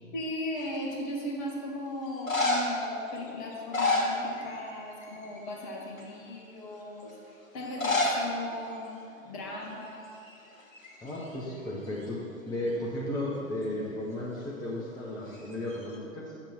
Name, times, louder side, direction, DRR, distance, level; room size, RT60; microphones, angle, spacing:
voice 1, 0.1-10.1, left 1 dB, 35° left, -1 dB, 1.7 m, -38 dB
sound 1, 0.6-1.1 2.1-2.8 3.5-4.7 5.0-5.4 6.0-6.1 7.6-8.2 8.5-8.6 8.8-8.9 9.7-9.9 10.2-11.4 15.3-15.9, left 2 dB, 75° left, 1.7 m, -30 dB
voice 2, 11.0-12.2 12.4-16.2, left 1 dB, 10° left, -6 dB, 1.0 m, -34 dB
9.6 x 7.2 x 4.5 m, 2.6 s
figure-of-eight pair, 105°, 40 cm